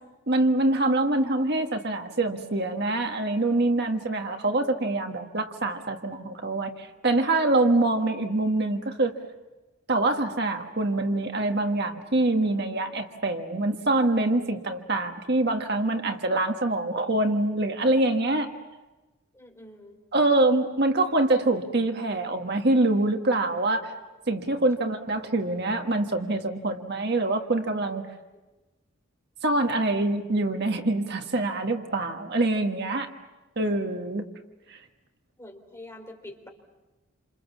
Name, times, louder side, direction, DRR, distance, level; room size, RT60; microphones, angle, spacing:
voice 1, 0.3-9.1 9.9-18.5 20.1-23.9 24.3-28.0 29.4-33.1 33.5-34.2 34.7-34.8, right 2 dB, 55° right, 5 dB, 1.6 m, -25 dB
voice 2, 19.3-20.0 24.8-25.0 35.4-36.5, left 1 dB, 15° left, 2 dB, 3.9 m, -45 dB
28.5 x 27.5 x 7.2 m, 1.1 s
head